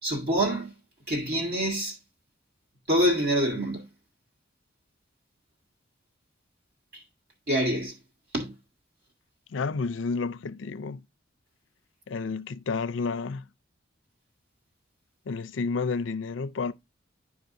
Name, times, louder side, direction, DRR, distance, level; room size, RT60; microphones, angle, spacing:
voice 1, 0.0-0.7 1.1-2.0 2.9-3.9 6.9-7.0 7.5-8.0 8.3-8.5, equal, 55° right, 1.9 m, -26 dB
voice 2, 9.5-11.0 12.1-13.4 15.3-16.7, left 4 dB, 85° left, 0.5 m, -30 dB
10.5 x 5.0 x 2.6 m
head